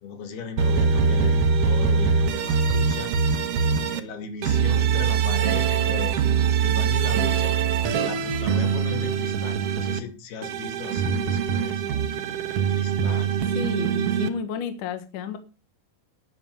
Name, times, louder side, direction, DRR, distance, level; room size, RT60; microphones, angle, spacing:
voice 1, 0.0-3.2 3.6-6.2 6.6-7.6 8.0-11.8 12.5-13.3, left 5 dB, 85° left, 7 dB, 4.2 m, -37 dB
sound 1, 0.6-4.0 4.4-10.0 10.4-14.3, right 6 dB, 70° right, 1.4 m, -23 dB
voice 2, 13.6-15.4, left 7 dB, 60° left, 9 dB, 2.7 m, -31 dB
12.0 x 9.7 x 5.6 m, 0.33 s
omnidirectional pair, 4.3 m